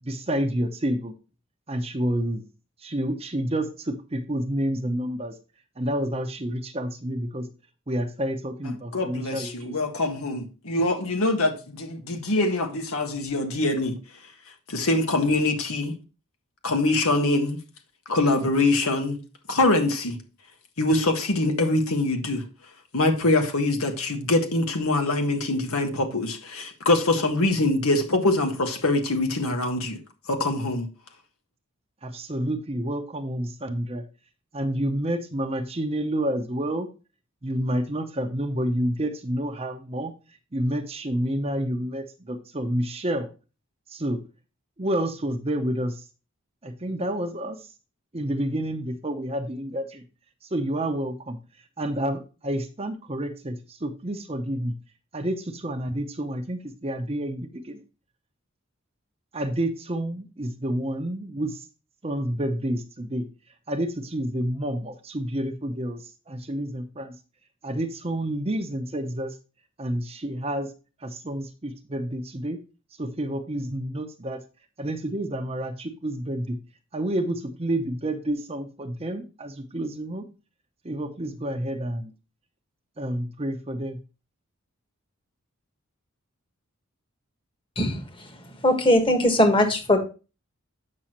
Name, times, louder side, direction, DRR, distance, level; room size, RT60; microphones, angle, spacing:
voice 1, 0.0-1.1 1.7-2.4 2.8-5.4 5.8-7.5 7.9-9.8 32.0-34.0 34.5-36.9 37.4-40.1 40.5-43.3 43.9-44.2 44.8-46.0 46.6-47.6 48.1-50.0 50.5-51.4 51.8-54.7 55.1-57.8 59.3-61.6 62.0-63.3 63.7-67.1 67.6-69.4 69.8-70.7 71.0-72.6 73.0-74.4 74.8-76.6 76.9-80.3 80.8-82.1 83.0-84.0, right 1 dB, 25° right, 0.8 m, -29 dB
voice 2, 8.9-14.0 14.7-16.0 16.6-17.6 18.1-19.2 19.5-20.2 20.8-22.4 22.9-30.0 30.3-30.9, left 2 dB, 80° left, 1.5 m, -24 dB
voice 3, 87.8-88.4 88.6-90.0, left 1 dB, 25° left, 1.4 m, -20 dB
8.6 x 6.2 x 3.0 m
head